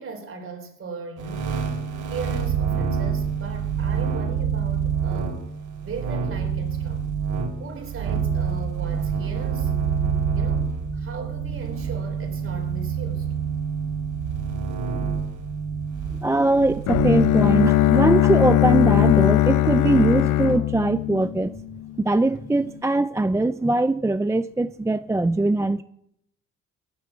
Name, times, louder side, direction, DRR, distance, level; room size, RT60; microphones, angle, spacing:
voice 1, 0.0-1.5 2.1-5.5 5.8-7.1 7.6-9.7 10.3-13.3, right 4 dB, 45° right, 4.0 m, -38 dB
sound 1, 1.2-17.8, right 6 dB, 75° right, 3.2 m, -27 dB
voice 2, 16.2-21.5 22.0-25.8, right 2 dB, 10° right, 0.4 m, -21 dB
Bowed string instrument, 16.9-21.8, left 14 dB, 80° left, 0.8 m, -19 dB
16.0 x 9.6 x 5.8 m
cardioid pair, 90°, 30 cm